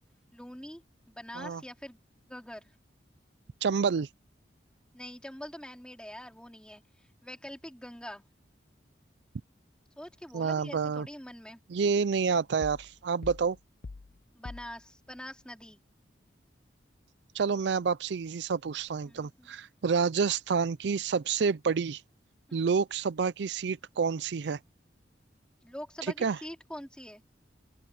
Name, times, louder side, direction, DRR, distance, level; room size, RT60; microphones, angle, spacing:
voice 1, 0.3-2.0 2.3-2.7 4.9-8.3 10.0-11.6 14.3-15.8 19.0-19.5 22.5-22.7 25.6-27.2, equal, 5° left, 4.0 m, -44 dB
voice 2, 3.6-4.1 10.3-11.1 11.7-13.6 17.3-22.0 22.5-24.6 26.2-26.4, right 5 dB, 70° right, 0.4 m, -28 dB
sound 1, 12.6-13.0 13.2-14.8, left 3 dB, 45° left, 0.5 m, -44 dB
open air
head